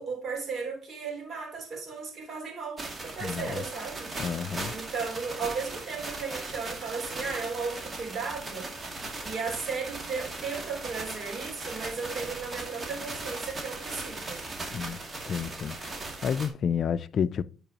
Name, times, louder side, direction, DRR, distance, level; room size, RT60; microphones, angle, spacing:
voice 1, 0.0-4.1 4.7-8.7 9.2-14.4 14.9-15.1, right 5 dB, 55° right, 3.2 m, -35 dB
sound 1, 2.8-16.5, right 2 dB, 35° right, 2.2 m, -38 dB
voice 2, 3.2-3.6 4.2-4.7 14.7-15.0 15.3-15.8 16.2-17.4, left 7 dB, 60° left, 0.4 m, -30 dB
10.0 x 4.7 x 2.9 m
cardioid pair, 90°, 0 cm